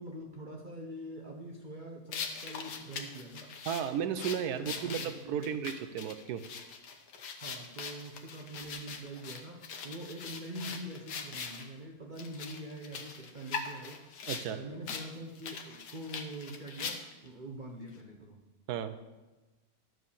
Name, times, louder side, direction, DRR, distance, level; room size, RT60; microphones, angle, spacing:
voice 1, 0.0-3.5 4.6-5.5 7.2-14.1 14.5-18.4, right 1 dB, 40° right, 0 dB, 0.8 m, -44 dB
sound 1, 2.1-11.7 12.2-14.5 14.9-15.1 15.3-17.3, left 5 dB, 80° left, 1.5 m, -41 dB
voice 2, 3.7-6.4 14.3-14.6 18.7-19.0, right 8 dB, 80° right, 11 dB, 1.1 m, -34 dB
11.5 x 4.7 x 7.0 m, 1.1 s
omnidirectional pair, 1.6 m